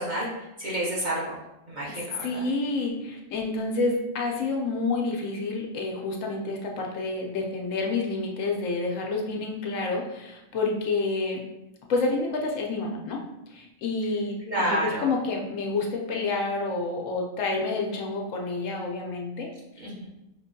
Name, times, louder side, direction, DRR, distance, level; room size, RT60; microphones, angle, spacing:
voice 1, 0.0-1.4 1.7-2.3 14.5-15.1 19.8-20.0, right 1 dB, 40° right, -6 dB, 0.8 m, -29 dB
voice 2, 1.9-11.4 11.9-13.2 13.5-19.5, left 3 dB, 70° left, 0 dB, 1.0 m, -29 dB
4.9 x 2.6 x 2.6 m, 0.94 s
omnidirectional pair, 1.4 m